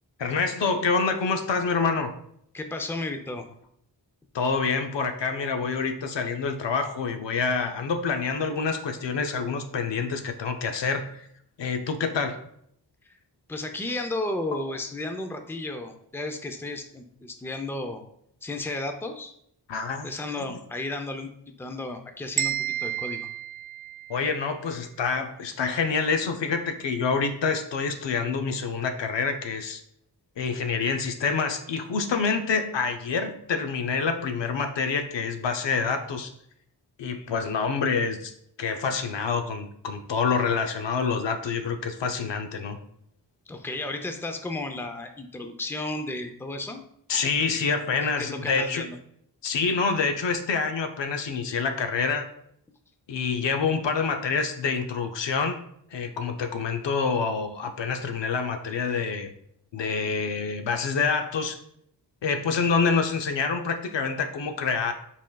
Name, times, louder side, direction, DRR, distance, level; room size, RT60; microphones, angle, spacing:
voice 1, 0.2-2.1 4.3-11.3 11.6-12.4 19.7-20.1 20.4-20.5 24.1-29.8 30.4-36.3 37.0-38.3 38.6-42.8 47.1-48.9 49.4-52.3 53.1-55.6 55.9-59.3 59.7-61.6 62.2-64.9, left 5 dB, 80° left, 6 dB, 0.6 m, -27 dB
voice 2, 2.5-3.5 13.5-18.0 18.4-19.3 20.0-21.3 21.6-23.3 43.5-46.8 48.0-49.0, left 2 dB, 5° left, 5 dB, 0.5 m, -33 dB
sound 1, 22.4-24.4, right 10 dB, 50° right, 0.5 m, -31 dB
6.2 x 3.7 x 2.3 m, 0.71 s
wide cardioid pair, 60°, 43 cm